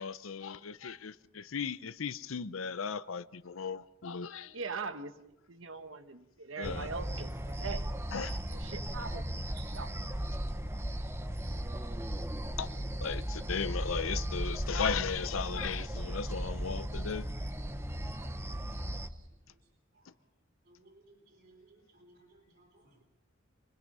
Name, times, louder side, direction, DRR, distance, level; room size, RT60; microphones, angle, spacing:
voice 1, 0.0-4.5 6.6-6.9 8.1-8.4 12.6-12.7 13.0-17.3, left 6 dB, 85° left, 0.7 m, -36 dB
voice 2, 4.5-5.1 5.5-7.9 8.5-9.2 9.6-9.9, right 4 dB, 75° right, 1.3 m, -41 dB
sound 1, 6.6-19.1, equal, 15° right, 1.0 m, -36 dB
voice 3, 11.4-11.7 12.0-12.1 18.7-18.8 20.0-20.1 20.7-23.0, right 4 dB, 50° right, 3.5 m, -60 dB
25.0 x 20.0 x 5.5 m
head